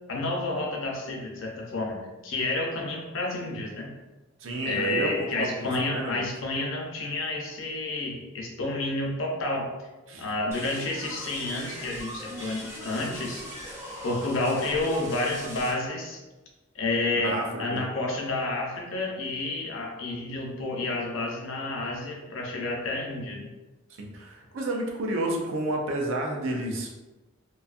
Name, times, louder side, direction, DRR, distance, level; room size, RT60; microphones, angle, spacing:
voice 1, 0.1-2.0 2.2-3.9 4.6-9.7 10.2-13.4 14.0-16.2 16.8-23.5, left 2 dB, 70° left, 0 dB, 0.6 m, -30 dB
voice 2, 4.4-6.2 10.1-10.3 17.2-17.8 24.0-26.9, right 1 dB, 75° right, 1 dB, 0.5 m, -30 dB
sound 1, 10.5-15.7, equal, 15° right, 0.6 m, -39 dB
2.6 x 2.3 x 2.4 m, 1.1 s
head